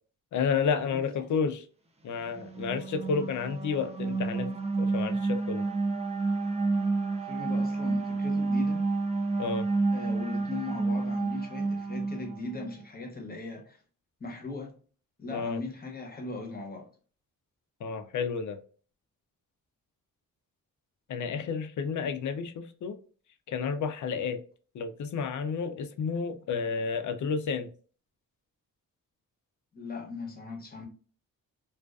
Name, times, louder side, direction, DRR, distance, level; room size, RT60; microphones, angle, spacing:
voice 1, 0.3-1.6 2.0-5.6 9.4-9.7 15.3-15.6 17.8-18.6 21.1-23.0 23.5-24.4 24.7-27.7, left 5 dB, 60° left, 0.5 m, -31 dB
voice 2, 0.9-1.3 7.2-8.8 9.9-13.8 14.2-14.7 15.2-16.9 29.7-30.9, left 3 dB, 25° left, 0.8 m, -39 dB
sound 1, 2.2-12.7, right 3 dB, 20° right, 0.4 m, -30 dB
2.4 x 2.3 x 2.3 m
cardioid pair, 100°, 35 cm